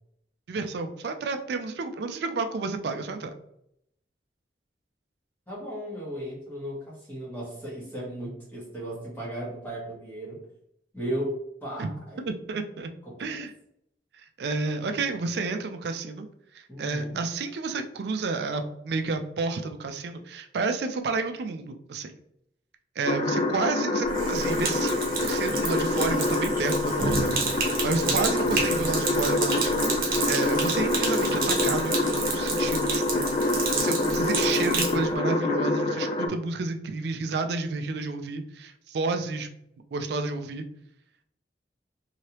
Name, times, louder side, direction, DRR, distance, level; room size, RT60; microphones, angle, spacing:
voice 1, 0.5-3.3 11.8-11.9 12.2-12.9 13.2-13.5 14.1-16.3 16.5-22.1 23.0-29.7 30.0-39.5 39.9-40.7, right 3 dB, 70° right, 7 dB, 0.4 m, -31 dB
voice 2, 5.5-10.4 10.9-11.3 11.6-12.2 13.0-13.4 16.7-17.2 27.9-28.3, right 1 dB, 10° left, -7 dB, 1.1 m, -36 dB
sound 1, 23.0-36.3, left 2 dB, 35° left, 0.4 m, -26 dB
Sink (filling or washing), 24.0-35.0, right 4 dB, 55° right, 0.8 m, -30 dB
3.1 x 2.8 x 2.9 m, 0.74 s
head